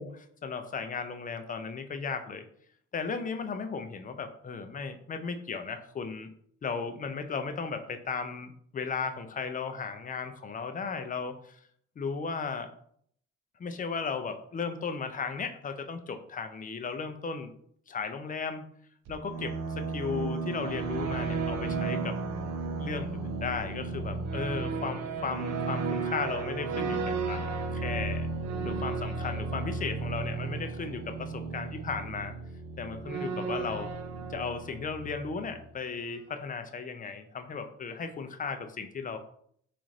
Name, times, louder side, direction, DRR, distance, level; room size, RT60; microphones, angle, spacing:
voice 1, 0.0-2.4 2.9-6.3 6.6-11.6 12.0-12.7 13.6-17.5 17.9-18.7 19.1-22.1 22.8-28.3 28.6-32.4 32.8-33.9 34.3-39.2, left 5 dB, 30° left, 8 dB, 0.5 m, -35 dB
sound 1, 19.1-35.7, right 4 dB, 60° right, 0.5 m, -34 dB
3.1 x 2.5 x 3.9 m, 0.64 s
cardioid pair, 90°, 30 cm